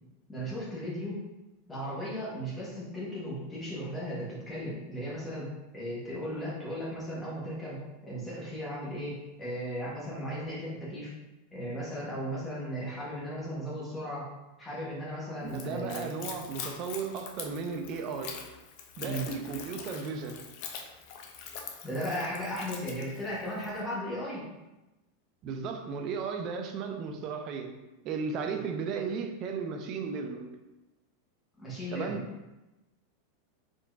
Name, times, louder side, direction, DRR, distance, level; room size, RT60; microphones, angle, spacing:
voice 1, 0.3-1.2 1.7-11.1 11.5-14.3 14.6-16.1 19.0-19.3 21.8-24.5 31.6-32.2, equal, 10° left, -7 dB, 1.0 m, -36 dB
voice 2, 15.4-18.3 19.0-20.4 25.4-27.7 28.0-30.5 31.9-32.2, right 5 dB, 30° right, 4 dB, 0.4 m, -35 dB
Splash splatter / Trickle dribble, 15.5-23.8, left 7 dB, 40° left, 0.4 m, -44 dB
3.7 x 3.7 x 2.3 m, 1.0 s
supercardioid pair, 175°, 0 cm